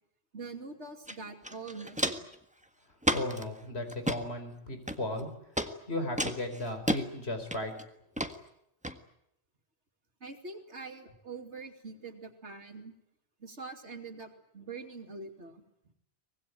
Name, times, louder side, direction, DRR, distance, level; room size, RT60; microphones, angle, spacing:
voice 1, 0.3-2.3 10.2-12.9 13.4-15.6, right 4 dB, 80° right, 5 dB, 3.0 m, -44 dB
Walk footsteps, 1.1-1.2 1.4-2.3 3.0-3.4 3.9-4.2 4.9-5.2 5.6-5.7 6.2-7.0 7.5-7.8 8.2-8.3 8.8-8.9, equal, 5° right, 1.6 m, -31 dB
voice 2, 3.1-5.3 5.9-7.7, left 1 dB, 65° left, 7 dB, 4.9 m, -35 dB
24.5 x 20.0 x 9.3 m, 0.79 s
omnidirectional pair, 1.2 m